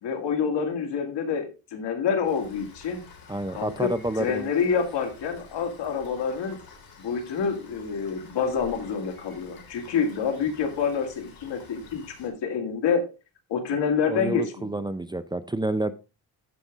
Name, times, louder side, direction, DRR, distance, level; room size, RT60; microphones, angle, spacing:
voice 1, 0.0-3.0 3.5-3.9 4.2-6.6 7.0-13.0 13.5-14.7, left 6 dB, 85° left, 4 dB, 2.3 m, -27 dB
Rain, 2.2-12.3, left 4 dB, 55° left, 3.4 m, -49 dB
voice 2, 3.3-4.5 14.1-15.9, right 1 dB, 10° right, 11 dB, 0.4 m, -29 dB
13.5 x 5.3 x 3.5 m, 0.30 s
cardioid pair, 125°, 41 cm